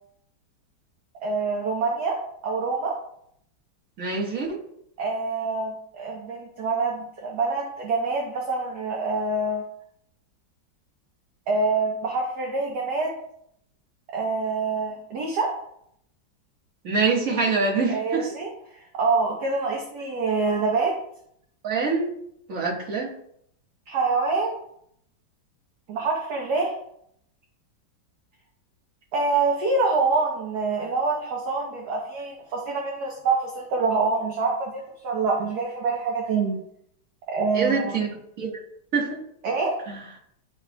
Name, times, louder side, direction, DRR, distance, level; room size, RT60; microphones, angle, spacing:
voice 1, 1.2-3.0 5.0-9.6 11.5-13.1 14.1-15.5 17.9-18.5 18.9-20.9 23.9-24.6 25.9-26.7 29.1-36.6 37.3-38.0 39.4-39.7, right 3 dB, 60° right, -1 dB, 1.5 m, -26 dB
voice 2, 4.0-4.6 16.8-18.3 21.6-22.1 22.5-23.1 37.5-38.6 38.9-39.2 39.9-40.1, right 4 dB, 45° right, -2 dB, 1.9 m, -25 dB
11.5 x 4.5 x 2.3 m, 0.72 s
omnidirectional pair, 2.2 m